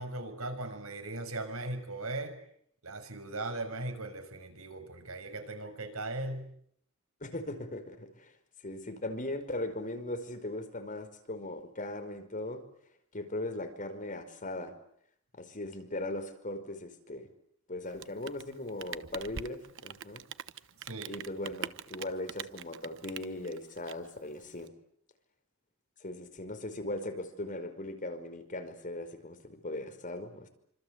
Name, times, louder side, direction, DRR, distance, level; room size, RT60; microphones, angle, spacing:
voice 1, 0.0-2.3 2.8-6.5 20.8-21.1, right 2 dB, 80° right, 8 dB, 6.6 m, -38 dB
voice 2, 7.2-8.3 8.6-12.6 13.1-14.7 15.4-17.3 17.7-20.2 21.1-24.7 26.0-30.5, left 1 dB, 40° left, 8 dB, 5.1 m, -39 dB
Rain, 17.8-24.7, right 8 dB, 65° right, 1.1 m, -44 dB
27.5 x 26.0 x 8.2 m, 0.69 s
head